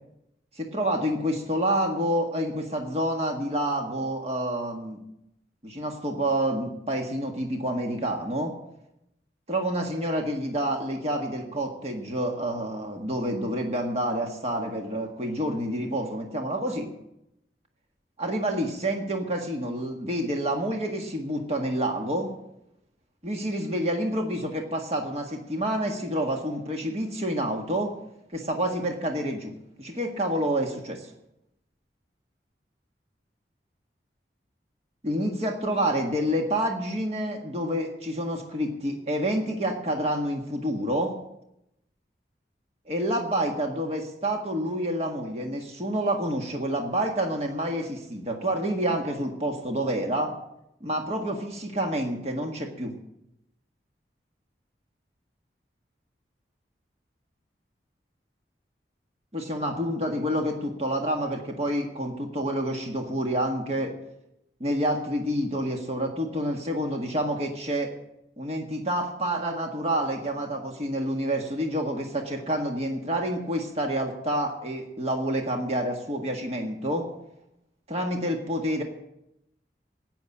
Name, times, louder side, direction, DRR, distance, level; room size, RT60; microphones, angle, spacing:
voice 1, 0.6-5.0 5.6-8.5 9.5-16.9 18.2-22.3 23.2-27.9 28.3-31.1 35.0-41.1 42.9-50.3 50.8-52.9 59.3-63.9 64.6-67.9 68.4-77.1 77.9-78.8, right 1 dB, 35° right, 2 dB, 1.7 m, -28 dB
11.5 x 9.4 x 8.4 m, 0.83 s
head